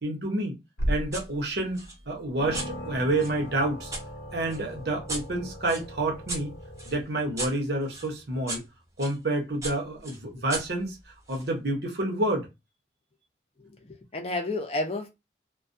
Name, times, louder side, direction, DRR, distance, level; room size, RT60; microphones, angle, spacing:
voice 1, 0.0-0.6 0.9-3.9 4.3-6.5 6.8-8.6 9.0-11.0 11.3-12.5, right 2 dB, 65° right, 0.9 m, -29 dB
sound 1, 0.8-1.3 1.8-1.9 2.4-7.0, equal, 85° left, 0.8 m, -36 dB
sound 2, 1.1-1.3 1.7-4.1 4.5-9.2 9.6-11.5, right 2 dB, 20° right, 0.7 m, -39 dB
voice 2, 13.6-15.1, left 2 dB, 35° left, 0.6 m, -31 dB
2.3 x 2.2 x 2.5 m
head